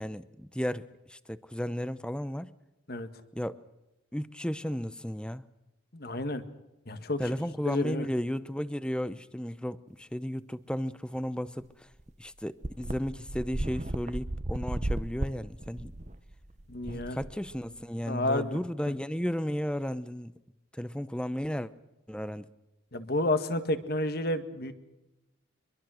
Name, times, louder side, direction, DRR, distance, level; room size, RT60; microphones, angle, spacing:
voice 1, 0.0-2.5 3.3-3.6 4.1-5.4 7.2-11.9 12.2-15.9 16.8-20.3 20.7-21.7 22.1-22.5, equal, 5° left, 0.7 m, -34 dB
voice 2, 5.9-6.4 6.9-7.2 7.7-8.1 16.7-17.2 18.1-18.6 22.9-24.7, left 1 dB, 50° left, 1.8 m, -30 dB
sound 1, 11.6-11.7 12.0-12.1 12.6-17.8, right 1 dB, 35° right, 0.9 m, -35 dB
24.5 x 23.0 x 6.4 m
head